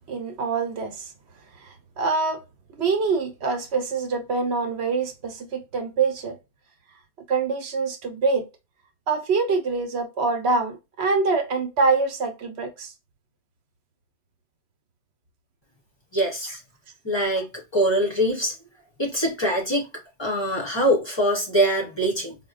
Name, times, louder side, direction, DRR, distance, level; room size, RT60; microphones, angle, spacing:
voice 1, 0.1-1.1 1.6-2.4 2.7-6.4 7.3-8.5 9.1-12.9 16.4-16.6, right 4 dB, 70° right, 1.0 m, -25 dB
voice 2, 16.1-16.6 17.0-18.5 19.0-19.9 20.2-22.4, right 1 dB, 25° left, 0.8 m, -23 dB
4.2 x 2.1 x 2.3 m
omnidirectional pair, 1.1 m